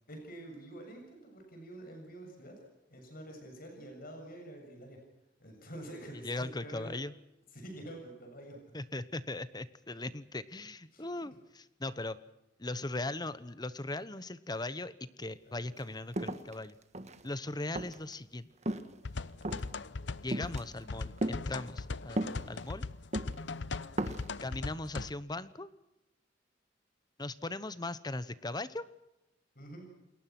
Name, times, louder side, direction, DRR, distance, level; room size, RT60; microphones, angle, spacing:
voice 1, 0.1-5.0 5.4-7.0 7.5-8.6 10.9-11.1 15.4-15.7 23.4-23.5 29.6-29.9, right 1 dB, 55° left, 3 dB, 7.3 m, -47 dB
voice 2, 6.2-7.1 8.7-12.2 12.6-16.8 17.2-18.5 20.2-22.8 24.4-25.7 27.2-28.8, left 2 dB, 25° left, 15 dB, 1.1 m, -39 dB
sound 1, 15.8-15.9 16.1-17.3 17.8-18.1 18.6-19.0 19.4-19.8 20.3-20.6 21.2-21.4 22.2-22.7 23.1-23.4 23.8-24.3, right 1 dB, 40° right, 1.7 m, -35 dB
sound 2, 19.0-25.1, left 3 dB, 75° left, 0.8 m, -39 dB
28.5 x 21.5 x 6.1 m, 0.91 s
head